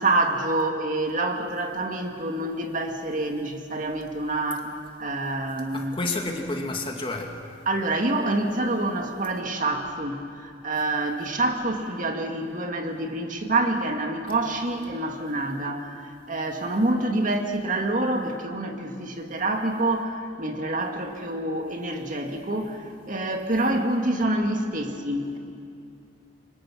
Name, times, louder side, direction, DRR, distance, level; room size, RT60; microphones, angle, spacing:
voice 1, 0.0-6.0 7.7-25.4, right 2 dB, 45° right, 3 dB, 2.1 m, -27 dB
voice 2, 5.7-7.3, left 2 dB, 30° left, 2 dB, 2.5 m, -30 dB
29.5 x 24.0 x 6.2 m, 2.4 s
head